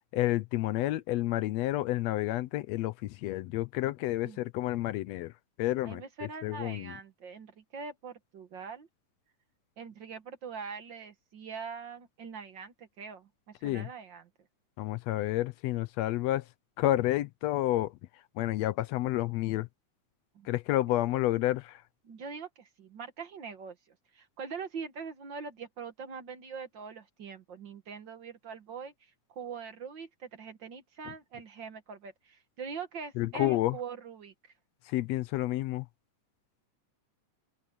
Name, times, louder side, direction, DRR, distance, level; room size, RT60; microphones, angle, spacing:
voice 1, 0.1-5.3 5.6-6.0 6.4-6.9 13.6-13.9 14.8-16.4 16.8-17.9 18.4-19.7 20.4-21.8 33.2-33.8 34.9-35.9, left 15 dB, 80° left, 1.6 m, -30 dB
voice 2, 5.8-8.9 9.8-14.3 20.3-20.5 22.0-23.8 24.1-28.9 29.3-34.3, right 5 dB, 50° right, 1.6 m, -43 dB
omnidirectional pair, 3.4 m